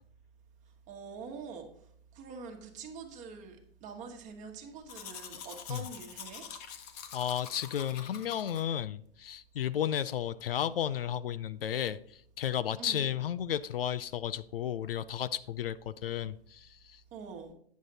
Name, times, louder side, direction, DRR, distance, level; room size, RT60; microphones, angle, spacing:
voice 1, 0.9-1.7 2.1-6.5 12.8-13.1 17.1-17.5, right 5 dB, 25° right, 3 dB, 1.4 m, -45 dB
Domestic sounds home sounds, 4.9-8.6, left 8 dB, 40° left, 1.1 m, -46 dB
voice 2, 7.1-12.0 12.4-17.0, left 10 dB, 70° left, 15 dB, 0.5 m, -33 dB
9.3 x 6.3 x 4.0 m, 0.64 s
hypercardioid pair, 120°, 30 cm